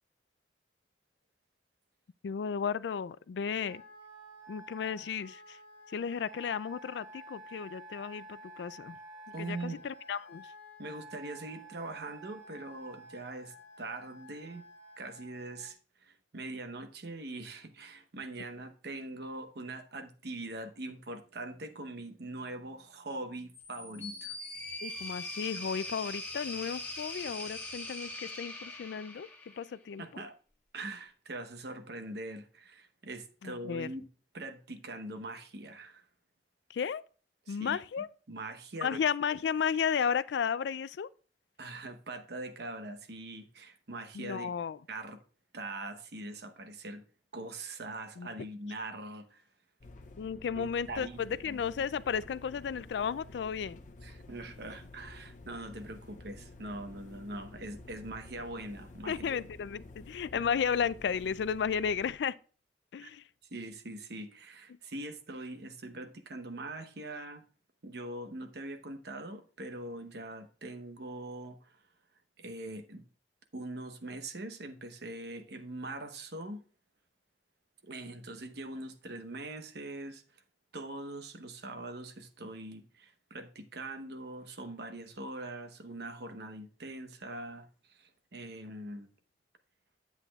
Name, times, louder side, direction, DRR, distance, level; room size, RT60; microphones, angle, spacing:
voice 1, 2.2-3.8 4.5-5.6 5.9-9.0 9.4-10.5 24.8-29.3 29.6-30.2 33.4-33.9 36.7-37.0 37.5-38.1 38.8-41.1 44.1-44.8 48.2-48.3 50.2-53.8 59.1-62.3 62.9-63.2, left 7 dB, 75° left, 0.3 m, -33 dB
Wind instrument woodwind instrument, 3.6-15.7, right 1 dB, 50° right, 2.0 m, -51 dB
voice 2, 9.3-9.8 10.8-14.7 15.0-24.4 30.0-30.3 30.7-34.1 34.3-36.0 37.5-39.0 41.6-44.5 44.9-45.2 45.5-47.0 47.3-49.4 50.5-51.6 54.0-59.4 60.3-60.4 63.0-63.1 63.5-67.4 67.8-71.8 72.4-73.0 73.5-76.6 77.8-80.4 80.7-89.1, right 2 dB, 65° right, 0.9 m, -42 dB
sound 1, 23.5-29.8, left 2 dB, 10° left, 1.7 m, -41 dB
sound 2, 49.8-62.2, left 2 dB, 45° left, 0.8 m, -51 dB
9.9 x 8.2 x 2.3 m
head